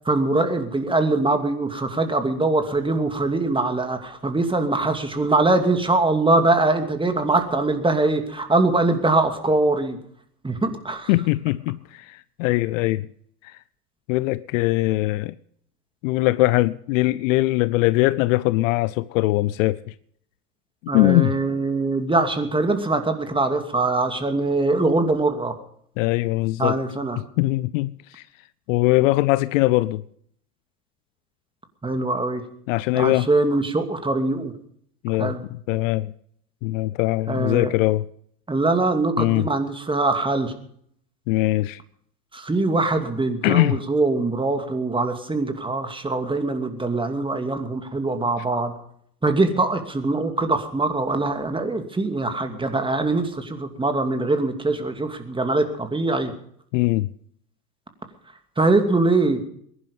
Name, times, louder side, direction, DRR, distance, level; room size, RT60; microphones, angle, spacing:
voice 1, 0.1-10.0 10.4-11.1 20.9-25.5 26.6-27.2 31.8-32.4 32.9-34.5 35.2-35.4 37.3-37.7 38.5-40.5 42.3-48.7 49.2-56.3 58.6-59.4, right 2 dB, 10° right, 2.5 m, -22 dB
voice 2, 11.1-13.1 13.4-13.6 14.1-15.4 16.0-19.9 20.9-21.4 26.0-26.8 27.2-28.2 28.7-30.0 32.7-33.3 35.0-36.1 36.6-38.0 39.2-39.5 41.3-41.8 43.4-43.8 56.7-57.1, left 19 dB, 55° left, 0.7 m, -21 dB
21.0 x 11.5 x 5.4 m
hypercardioid pair, 85°, 47 cm